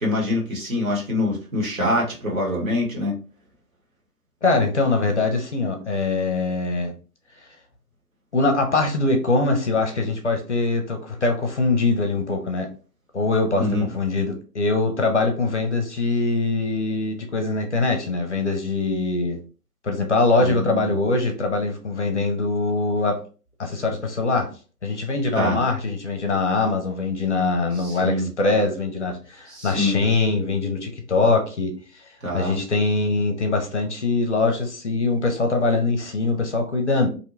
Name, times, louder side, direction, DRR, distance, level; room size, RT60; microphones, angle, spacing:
voice 1, 0.0-3.1 13.6-13.9 20.4-20.9 25.3-25.6 27.8-28.3 29.5-30.0 32.2-32.6, left 1 dB, 60° right, -2 dB, 1.2 m, -25 dB
voice 2, 4.4-6.9 8.3-12.7 13.1-19.4 19.8-23.2 23.6-24.5 24.8-31.7 32.3-37.1, left 3 dB, 50° left, 4 dB, 0.6 m, -22 dB
2.6 x 2.1 x 2.6 m, 0.36 s
figure-of-eight pair, 145°, 47 cm